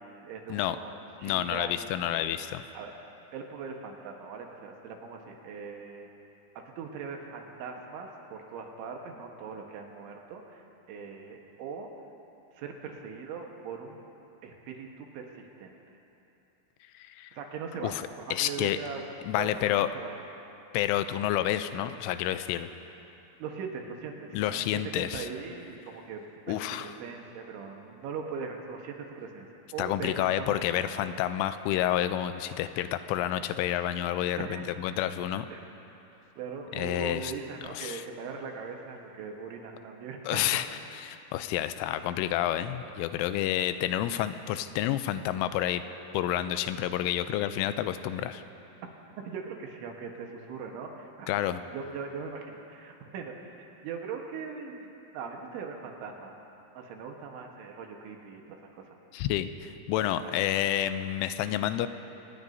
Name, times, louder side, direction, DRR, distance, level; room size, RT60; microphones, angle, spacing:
voice 1, 0.0-2.3 2.8-2.9 3.3-6.1 6.8-11.9 12.6-14.0 14.4-15.8 17.3-19.1 19.4-20.1 23.4-29.5 29.7-30.9 31.2-31.3 34.4-34.9 35.5-35.7 36.4-40.6 43.2-43.3 49.2-56.4 56.8-58.6 58.9-59.0 60.2-60.3, right 5 dB, 80° right, 2 dB, 3.5 m, -40 dB
voice 2, 1.2-2.6 17.0-17.4 17.8-18.8 19.2-19.9 20.7-22.7 24.3-25.3 26.5-26.9 29.8-35.5 36.7-37.3 37.8-38.0 40.3-45.9 46.1-48.4 51.3-51.6 59.1-61.9, left 12 dB, 90° left, 11 dB, 3.1 m, -29 dB
26.0 x 19.5 x 2.7 m, 2.9 s
omnidirectional pair, 5.5 m